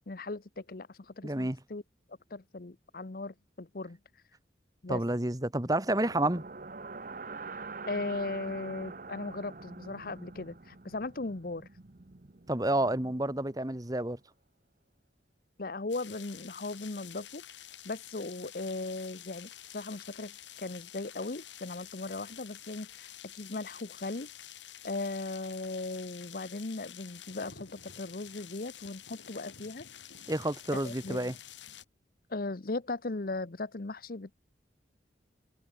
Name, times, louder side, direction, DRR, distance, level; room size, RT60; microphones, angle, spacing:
voice 1, 0.1-1.8 2.3-4.0 4.8-5.0 7.9-11.7 15.6-17.4 17.8-24.3 24.8-29.9 30.7-31.3 32.3-34.3, left 3 dB, 50° left, 0.8 m, -38 dB
voice 2, 1.2-1.6 4.9-6.4 12.5-14.2 30.3-31.3, right 1 dB, 20° right, 1.5 m, -29 dB
sound 1, 5.8-13.9, right 4 dB, 45° right, 1.0 m, -45 dB
sound 2, 15.9-31.8, left 10 dB, 85° left, 5.8 m, -49 dB
head